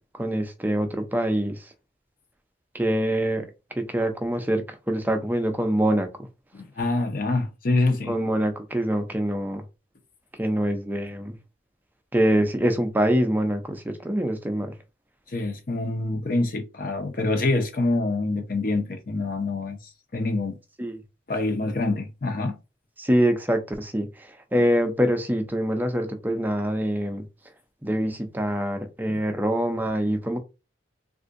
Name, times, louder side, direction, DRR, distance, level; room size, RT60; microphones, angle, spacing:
voice 1, 0.1-1.7 2.7-3.4 3.8-6.1 8.1-9.6 10.4-11.4 12.1-14.7 20.8-21.0 23.0-27.2 27.8-30.4, equal, 10° right, 0.4 m, -25 dB
voice 2, 6.5-8.1 15.3-19.8 20.1-20.6 21.3-22.6 29.1-29.2, left 2 dB, 50° left, 0.7 m, -26 dB
3.6 x 2.5 x 2.5 m
head